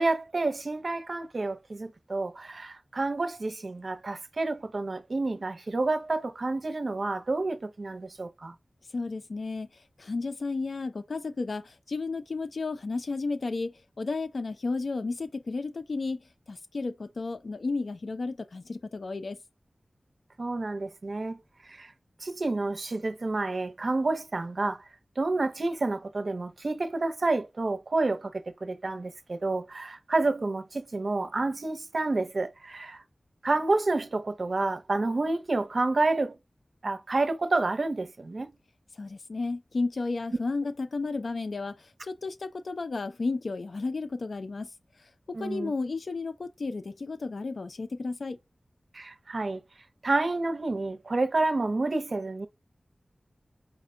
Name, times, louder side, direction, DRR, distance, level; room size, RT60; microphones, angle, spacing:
voice 1, 0.0-8.5 20.4-21.4 21.7-21.9 22.2-24.8 25.2-33.0 33.4-36.4 36.8-38.5 45.3-45.7 48.9-49.6 50.0-52.5, right 2 dB, 65° right, 0.6 m, -29 dB
voice 2, 8.9-9.7 10.0-16.2 16.5-19.4 39.0-44.7 45.3-48.4, left 3 dB, 75° left, 0.5 m, -33 dB
4.7 x 2.1 x 3.7 m
wide cardioid pair, 55°, 0 cm